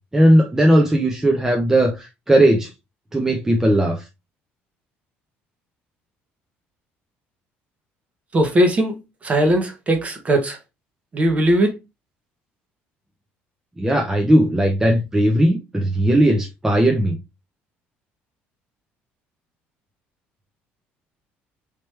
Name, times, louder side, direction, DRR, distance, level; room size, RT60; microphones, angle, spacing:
voice 1, 0.1-2.7 3.1-4.0 13.8-17.2, right 1 dB, 10° right, 0.7 m, -17 dB
voice 2, 8.3-8.9 9.2-10.6 11.1-11.7, right 1 dB, 30° right, 1.1 m, -18 dB
3.3 x 2.9 x 3.2 m
supercardioid pair, 95°, 5 cm